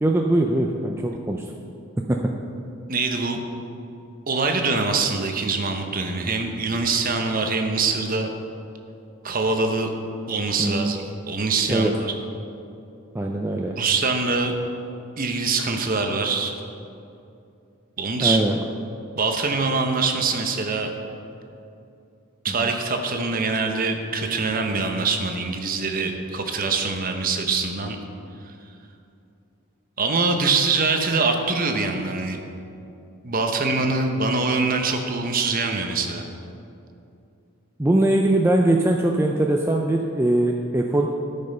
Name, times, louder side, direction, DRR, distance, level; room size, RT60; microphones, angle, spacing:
voice 1, 0.0-1.4 2.1-2.2 10.6-10.9 11.7-11.9 13.1-13.8 18.2-18.6 22.6-22.7 37.8-41.1, right 1 dB, 10° right, 1 dB, 0.4 m, -21 dB
voice 2, 2.9-3.4 4.3-8.3 9.2-9.9 10.3-11.0 11.3-12.1 13.8-14.6 15.2-16.5 18.0-18.4 19.2-20.9 22.4-28.0 30.0-32.4 33.2-36.3, right 4 dB, 40° right, 4 dB, 0.8 m, -24 dB
13.0 x 5.4 x 5.4 m, 2.7 s
head